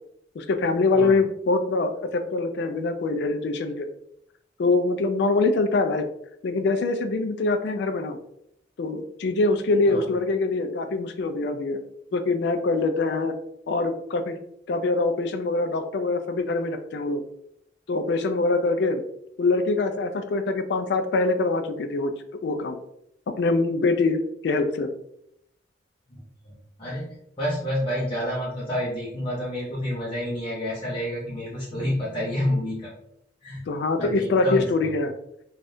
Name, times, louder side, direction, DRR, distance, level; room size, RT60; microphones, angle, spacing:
voice 1, 0.4-3.9 4.6-6.0 6.4-8.2 8.8-11.8 12.1-13.3 13.7-14.4 14.7-17.2 17.9-19.0 19.4-22.1 22.4-22.8 23.3-24.9 33.7-35.1, left 3 dB, 65° left, 8 dB, 0.4 m, -24 dB
voice 2, 26.1-32.9 33.4-33.7 34.0-34.9, equal, 30° left, -8 dB, 0.7 m, -29 dB
3.4 x 2.4 x 2.6 m, 0.76 s
head